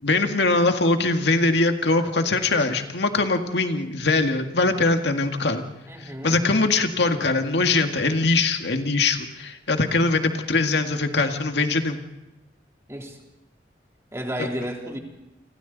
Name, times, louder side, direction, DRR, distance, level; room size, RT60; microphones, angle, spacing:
voice 1, 0.0-5.6 6.2-12.0, left 3 dB, 80° left, 5 dB, 1.9 m, -22 dB
voice 2, 5.9-6.4 12.9-13.2 14.1-15.0, equal, 15° right, 1 dB, 3.4 m, -32 dB
29.5 x 26.0 x 4.1 m, 0.94 s
head